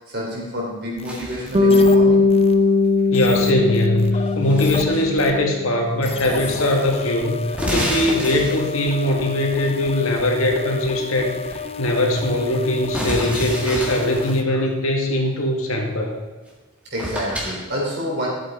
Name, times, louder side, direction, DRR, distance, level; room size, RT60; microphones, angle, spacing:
voice 1, 0.0-2.6 10.5-10.6 11.6-11.7 16.9-18.3, equal, 50° right, -3 dB, 3.9 m, -29 dB
sound 1, 1.0-2.6 3.1-5.4 6.0-14.4, left 5 dB, 30° left, 0.6 m, -32 dB
sound 2, 1.0-1.7 4.1-5.1 6.1-6.5 6.8-6.9 7.5-8.9 12.9-14.4 16.5-16.6 17.0-17.6, equal, 5° right, 1.9 m, -28 dB
Bass guitar, 1.5-5.8, left 3 dB, 25° right, 1.1 m, -18 dB
voice 2, 3.1-7.4 7.7-16.2, left 1 dB, 80° left, 1 dB, 2.0 m, -21 dB
12.5 x 7.9 x 4.5 m, 1.3 s
head